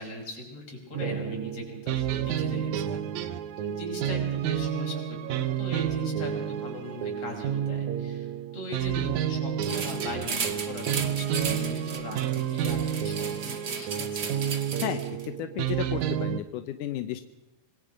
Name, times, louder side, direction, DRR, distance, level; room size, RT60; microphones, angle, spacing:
voice 1, 0.0-3.3 3.6-14.4, left 1 dB, 35° left, 0 dB, 6.2 m, -39 dB
sound 1, 0.9-16.4, right 9 dB, 75° right, 1.7 m, -30 dB
sound 2, 9.6-15.3, right 5 dB, 50° right, 1.2 m, -35 dB
voice 2, 15.4-17.2, left 12 dB, 75° left, 9 dB, 2.0 m, -32 dB
26.0 x 21.0 x 5.3 m, 0.97 s
omnidirectional pair, 4.6 m